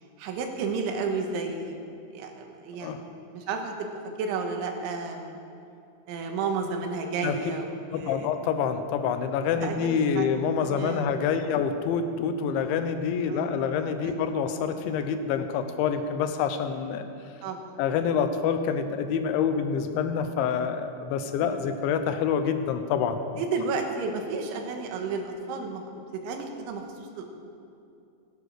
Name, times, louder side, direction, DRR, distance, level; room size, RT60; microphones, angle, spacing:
voice 1, 0.2-1.9 2.1-3.9 4.2-5.4 6.1-8.3 9.5-10.3 10.6-11.4 13.3-13.7 14.0-14.2 17.4-17.8 21.4-21.7 23.4-25.8 26.1-27.3, right 4 dB, 90° right, 4 dB, 3.8 m, -32 dB
voice 2, 7.9-17.1 17.8-23.2, left 6 dB, 85° left, 8 dB, 3.2 m, -27 dB
17.0 x 11.0 x 6.5 m, 2.6 s
omnidirectional pair, 5.3 m